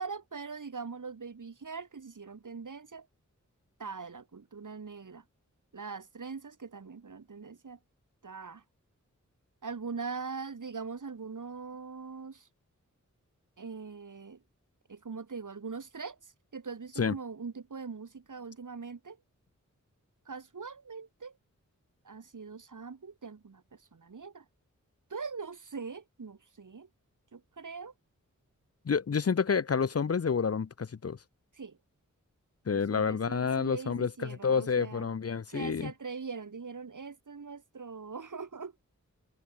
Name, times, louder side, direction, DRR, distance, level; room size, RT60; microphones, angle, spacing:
voice 1, 0.0-3.1 3.8-5.2 5.7-7.8 8.2-8.6 9.6-12.5 13.6-14.4 14.9-19.2 20.3-21.4 22.0-24.4 25.1-26.9 27.3-27.9 31.5-31.8 32.7-35.1 35.5-38.7, right 5 dB, 80° right, 6.2 m, -42 dB
voice 2, 28.8-31.2 32.7-35.9, left 6 dB, 50° left, 0.8 m, -29 dB
wide cardioid pair, 90°, 31 cm